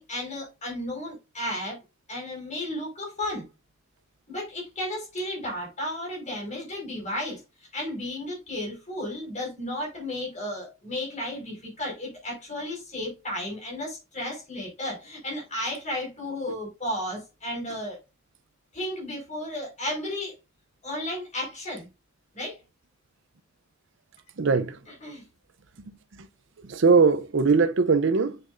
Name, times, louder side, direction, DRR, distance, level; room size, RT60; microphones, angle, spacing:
voice 1, 0.0-1.8 2.1-3.4 4.3-18.0 18.7-20.3 20.8-21.9 22.3-22.6 24.9-25.2, left 1 dB, 35° left, 4.9 m, -33 dB
voice 2, 24.4-24.8 26.6-28.4, right 4 dB, 65° right, 0.6 m, -20 dB
8.3 x 6.8 x 2.6 m
head